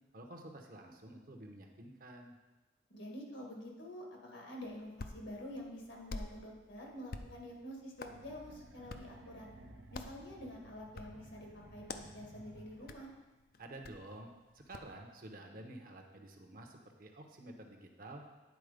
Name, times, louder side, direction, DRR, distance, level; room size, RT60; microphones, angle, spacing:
voice 1, 0.1-2.4 13.6-18.2, right 1 dB, 50° right, 3 dB, 0.8 m, -50 dB
voice 2, 2.9-9.5 9.9-13.1, left 1 dB, 80° left, -1 dB, 1.7 m, -48 dB
Hands, 4.6-15.0, left 3 dB, 50° left, 0.4 m, -51 dB
sound 1, 8.0-13.2, right 2 dB, 90° right, 0.7 m, -56 dB
9.1 x 4.3 x 5.0 m, 1.1 s
head